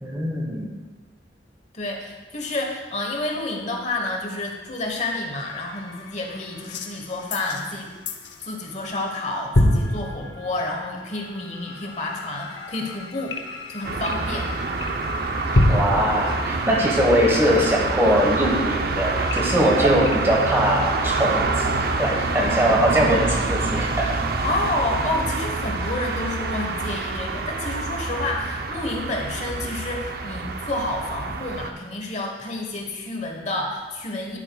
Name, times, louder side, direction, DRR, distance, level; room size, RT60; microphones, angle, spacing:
voice 1, 0.0-0.7 15.7-24.1, equal, 15° right, -1 dB, 1.3 m, -21 dB
voice 2, 1.7-7.9 8.4-13.4 13.7-14.5 24.4-34.4, left 2 dB, 40° left, 1 dB, 1.2 m, -29 dB
sound 1, 5.4-8.7 9.0-9.3 9.5-20.7, left 1 dB, 80° left, 0.8 m, -29 dB
sound 2, 13.8-31.7, right 3 dB, 55° right, 0.6 m, -26 dB
11.5 x 8.8 x 2.3 m, 1.3 s
head